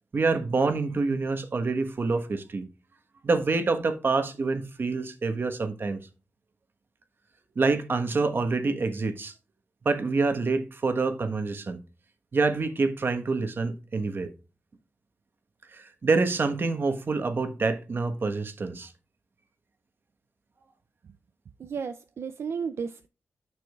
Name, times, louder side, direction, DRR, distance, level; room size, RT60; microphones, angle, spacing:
voice 1, 0.1-2.7 3.2-6.0 7.5-9.3 9.8-11.8 12.3-14.3 15.7-18.9, right 3 dB, 55° right, 1.3 m, -26 dB
voice 2, 21.6-23.1, right 6 dB, 75° right, 0.4 m, -33 dB
9.7 x 6.2 x 2.4 m
wide cardioid pair, 80°, 4 cm